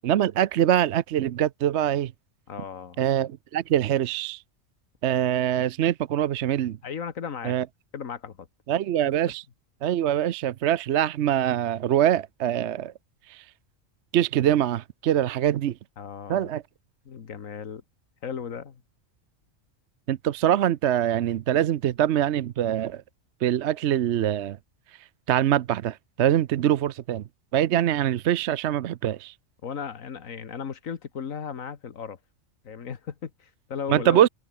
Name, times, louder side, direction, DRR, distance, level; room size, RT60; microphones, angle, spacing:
voice 1, 0.0-2.1 3.0-4.4 5.0-6.8 7.5-7.6 8.7-9.4 9.8-12.9 14.1-15.7 16.3-16.6 20.1-23.0 23.4-24.6 25.3-27.2 27.5-29.3 33.9-34.3, right 11 dB, 65° right, 0.9 m, -23 dB
voice 2, 2.5-3.0 6.8-7.6 7.9-8.5 16.0-16.5 17.1-17.8 18.2-18.8 29.6-32.2 32.6-34.2, left 7 dB, 85° left, 1.8 m, -36 dB
omnidirectional pair, 1.4 m